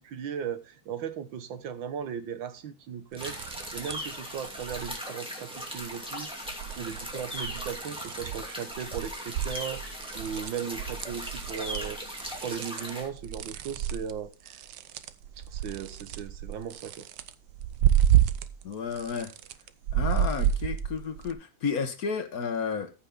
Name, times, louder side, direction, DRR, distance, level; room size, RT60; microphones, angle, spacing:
voice 1, 0.0-3.4 3.7-6.3 6.8-9.8 10.1-12.0 12.4-14.6 15.5-17.1, right 8 dB, 90° right, 1.9 m, -37 dB
sound 1, 3.1-4.1 4.4-5.0 5.5-6.1 6.5-8.4 8.7-18.6 18.9-21.3, right 10 dB, 70° right, 1.3 m, -30 dB
sound 2, 3.2-13.1, equal, 5° right, 2.3 m, -39 dB
voice 2, 18.6-19.3 19.9-22.9, left 6 dB, 55° left, 1.6 m, -32 dB
14.0 x 5.9 x 3.8 m
omnidirectional pair, 2.0 m